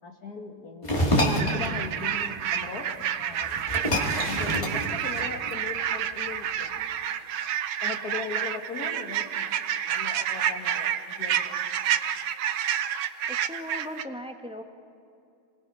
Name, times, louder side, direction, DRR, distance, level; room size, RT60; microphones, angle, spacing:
voice 1, 0.0-2.9 3.2-3.6 4.2-6.8 7.8-9.6 9.9-11.6, left 4 dB, 55° left, 4 dB, 2.2 m, -38 dB
sound 1, 0.8-1.6 3.0-3.1 3.4-5.5, equal, 15° left, 2.1 m, -26 dB
sound 2, 1.4-14.0, right 9 dB, 80° right, 1.4 m, -29 dB
voice 2, 13.3-14.6, left 1 dB, 5° right, 5 dB, 0.8 m, -38 dB
27.5 x 20.0 x 5.6 m, 2.6 s
omnidirectional pair, 1.9 m